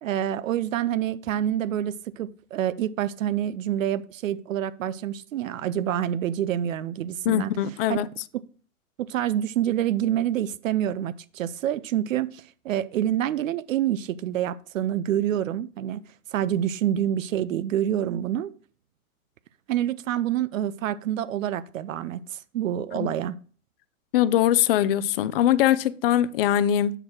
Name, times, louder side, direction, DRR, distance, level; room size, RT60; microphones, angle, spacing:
voice 1, 0.0-7.5 7.9-8.0 9.0-16.0 16.3-18.5 19.7-23.4, right 11 dB, 65° right, 0.6 m, -27 dB
voice 2, 7.3-8.1 22.9-23.1 24.1-26.9, left 11 dB, 40° left, 0.5 m, -22 dB
7.8 x 4.2 x 4.5 m
hypercardioid pair, 125°, 43 cm